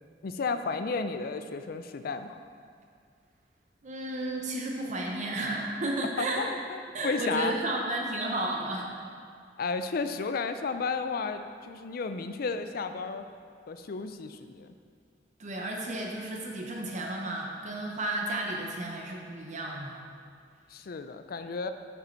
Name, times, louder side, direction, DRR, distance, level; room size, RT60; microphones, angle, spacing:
voice 1, 0.2-2.4 6.0-7.6 9.6-13.3 13.7-14.7 20.7-21.7, left 4 dB, 55° left, 9 dB, 0.4 m, -33 dB
voice 2, 3.8-6.5 6.9-8.9 15.4-20.0, right 2 dB, 45° right, 0 dB, 0.7 m, -33 dB
6.9 x 6.6 x 4.4 m, 2.2 s
head